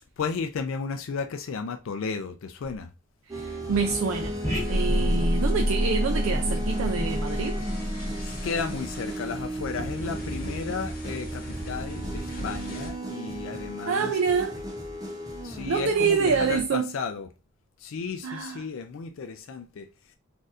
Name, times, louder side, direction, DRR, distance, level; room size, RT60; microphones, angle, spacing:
voice 1, 0.2-2.9 8.4-14.2 15.4-17.3 17.8-19.9, left 5 dB, 70° left, 0.4 m, -33 dB
sound 1, 3.3-16.6, right 1 dB, 20° right, 0.5 m, -35 dB
voice 2, 3.3-4.4 4.7-7.6 13.9-14.6 15.7-16.9 18.2-18.6, right 5 dB, 75° right, 0.4 m, -26 dB
sound 2, 3.7-12.9, left 1 dB, 45° left, 0.8 m, -40 dB
sound 3, 4.4-9.1, equal, 15° left, 1.2 m, -27 dB
4.1 x 2.5 x 2.4 m
head